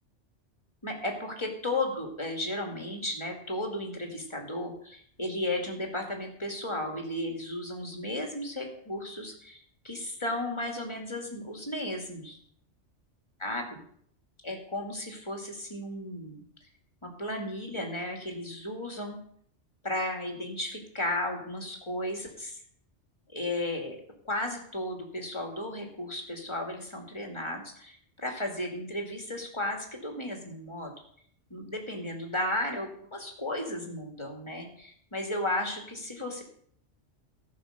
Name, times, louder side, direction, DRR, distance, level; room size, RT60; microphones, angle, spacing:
voice 1, 0.8-9.6 9.8-12.4 13.4-13.8 14.4-16.4 17.0-19.2 19.8-22.6 23.3-30.9 31.5-36.4, left 1 dB, 25° left, 2 dB, 2.3 m, -34 dB
15.0 x 5.9 x 6.6 m, 0.63 s
omnidirectional pair, 1.2 m